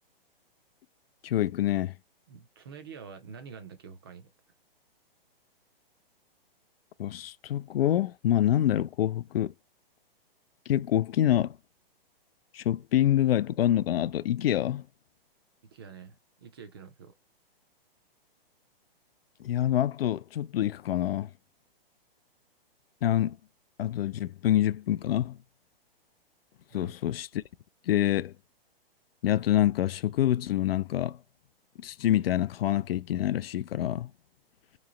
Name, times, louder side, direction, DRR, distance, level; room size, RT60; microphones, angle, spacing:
voice 1, 1.2-1.9 7.0-9.5 10.7-11.6 12.5-14.8 19.4-21.3 23.0-23.4 23.8-25.4 26.7-27.3 27.9-28.3 29.2-31.2 31.8-34.1, left 12 dB, 75° left, 0.4 m, -26 dB
voice 2, 2.3-4.3 15.7-17.1 26.7-26.9, right 6 dB, 25° right, 0.4 m, -47 dB
3.1 x 3.0 x 3.7 m
hypercardioid pair, 160°, 30 cm